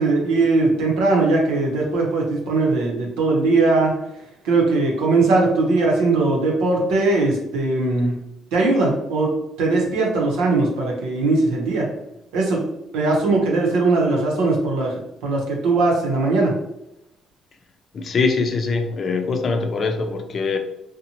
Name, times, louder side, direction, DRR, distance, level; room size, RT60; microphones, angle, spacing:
voice 1, 0.0-3.9 4.4-8.2 8.5-11.9 12.3-12.6 12.9-14.9 15.2-16.5, right 3 dB, 90° right, -1 dB, 0.7 m, -19 dB
voice 2, 17.9-20.6, left 4 dB, 50° left, 5 dB, 0.4 m, -23 dB
2.7 x 2.1 x 2.8 m, 0.85 s
cardioid pair, 80°, 0 cm